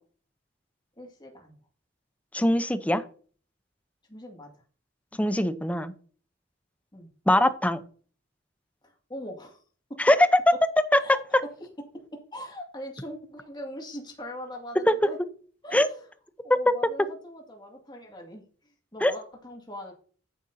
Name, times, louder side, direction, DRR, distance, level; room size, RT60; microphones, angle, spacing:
voice 1, 1.0-1.6 4.1-4.6 6.9-7.1 8.8-9.6 9.9-10.0 11.0-11.2 11.6-11.7 11.9-12.0 12.3-15.2 15.6-16.1 16.4-19.9, equal, 25° left, 1 dB, 2.1 m, -41 dB
voice 2, 2.3-3.0 5.2-5.9 7.3-7.8 10.0-10.2 14.9-15.0 15.7-15.9 19.0-19.1, left 1 dB, 10° left, 12 dB, 0.7 m, -22 dB
9.6 x 9.3 x 2.7 m, 0.42 s
head